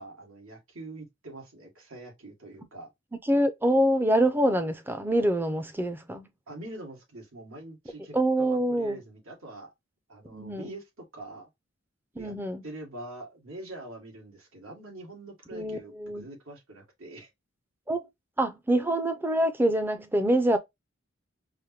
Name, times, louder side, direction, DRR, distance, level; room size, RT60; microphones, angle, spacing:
voice 1, 0.0-2.9 6.5-9.7 10.1-11.5 12.2-12.3 12.6-17.3, right 2 dB, 90° right, 1.7 m, -44 dB
voice 2, 3.2-6.3 8.1-9.0 10.3-10.7 12.2-12.6 15.5-16.2 17.9-18.1 18.4-20.6, right 1 dB, 10° right, 0.4 m, -25 dB
4.9 x 2.1 x 2.7 m
head